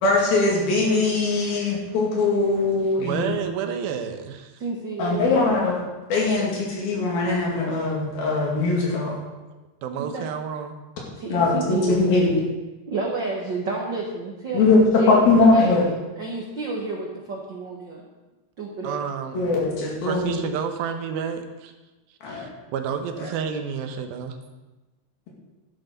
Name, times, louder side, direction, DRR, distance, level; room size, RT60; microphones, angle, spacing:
voice 1, 0.0-3.3 5.0-5.8 6.1-9.1 11.3-12.4 14.5-15.8 19.3-20.4 22.2-22.5 23.2-23.3, left 3 dB, 85° left, -3 dB, 4.2 m, -21 dB
voice 2, 3.0-4.5 9.8-10.8 18.8-19.4 20.1-21.7 22.3-24.4, right 7 dB, 90° right, 6 dB, 2.8 m, -30 dB
voice 3, 4.6-5.4 10.0-10.3 11.2-12.1 12.9-15.8 16.2-18.0 18.6-19.1, right 3 dB, 70° right, -1 dB, 1.0 m, -30 dB
12.0 x 11.5 x 4.0 m, 1.1 s
omnidirectional pair, 4.2 m